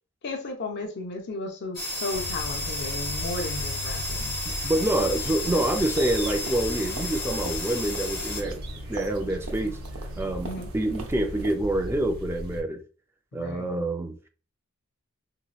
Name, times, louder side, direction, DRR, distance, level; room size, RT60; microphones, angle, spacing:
voice 1, 0.2-4.4 10.4-10.7 13.3-13.7, left 2 dB, 55° left, 0.5 m, -34 dB
sound 1, 1.7-8.4, left 2 dB, 10° left, 0.9 m, -33 dB
sound 2, 2.1-12.6, equal, 45° right, 0.7 m, -37 dB
voice 2, 4.5-8.6 8.9-9.8 10.2-12.8 13.3-14.3, right 1 dB, 10° right, 0.4 m, -27 dB
sound 3, 4.7-11.5, right 3 dB, 80° right, 0.7 m, -43 dB
3.0 x 2.8 x 2.3 m
head